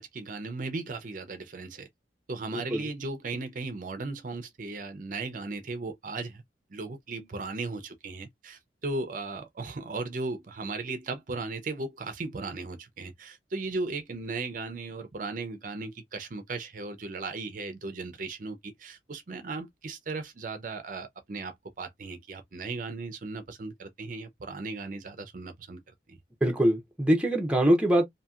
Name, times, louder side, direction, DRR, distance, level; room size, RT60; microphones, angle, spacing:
voice 1, 0.0-1.9 2.3-6.4 6.7-25.8 26.1-26.2, right 3 dB, 50° right, 0.6 m, -36 dB
voice 2, 2.5-2.9 26.4-28.1, right 1 dB, 5° right, 0.7 m, -23 dB
2.7 x 2.7 x 2.4 m
head